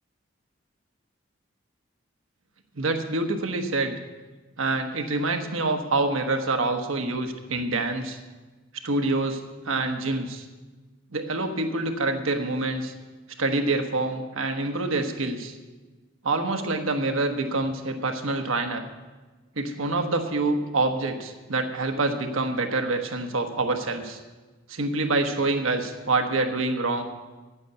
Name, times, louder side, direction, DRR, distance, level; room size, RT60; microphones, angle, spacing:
voice 1, 2.7-4.0 4.6-8.2 8.8-10.5 11.1-12.9 13.4-15.5 16.2-18.8 19.6-24.2 24.7-27.0, right 2 dB, 90° right, 5 dB, 1.2 m, -26 dB
8.4 x 8.1 x 9.2 m, 1.3 s
head